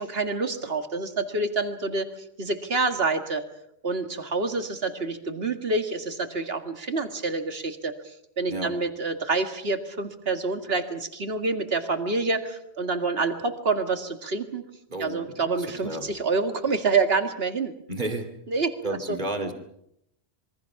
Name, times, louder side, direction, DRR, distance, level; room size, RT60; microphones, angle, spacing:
voice 1, 0.0-2.1 2.4-3.4 3.8-7.9 8.4-14.6 15.0-17.7 18.5-18.7 19.1-19.2, right 3 dB, 65° right, 7 dB, 2.2 m, -27 dB
voice 2, 14.9-16.1 17.9-18.3 18.8-19.5, right 2 dB, 45° right, 5 dB, 2.8 m, -32 dB
27.0 x 23.0 x 6.0 m, 0.76 s
omnidirectional pair, 1.1 m